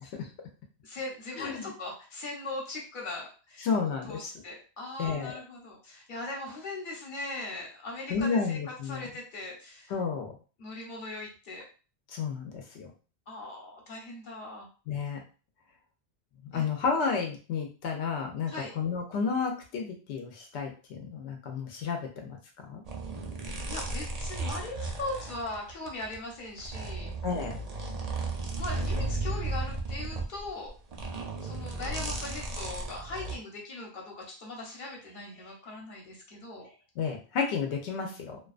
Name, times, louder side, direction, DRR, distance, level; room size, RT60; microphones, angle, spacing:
voice 1, 0.8-3.7 4.1-8.6 8.8-9.9 10.6-11.6 13.3-14.7 16.5-16.6 18.5-18.7 23.6-27.1 28.6-30.7 31.4-36.7, left 2 dB, 50° left, -1 dB, 0.9 m, -39 dB
voice 2, 1.4-1.7 3.6-4.2 5.0-5.3 8.1-9.1 9.9-10.3 12.1-12.9 14.9-15.2 16.4-22.4 22.7-22.8 27.2-27.6 37.0-38.4, left 5 dB, 85° left, 2 dB, 0.9 m, -31 dB
sound 1, 22.8-26.1 26.6-33.4, right 2 dB, 50° right, 0.5 m, -34 dB
2.3 x 2.3 x 2.4 m, 0.35 s
omnidirectional pair, 1.1 m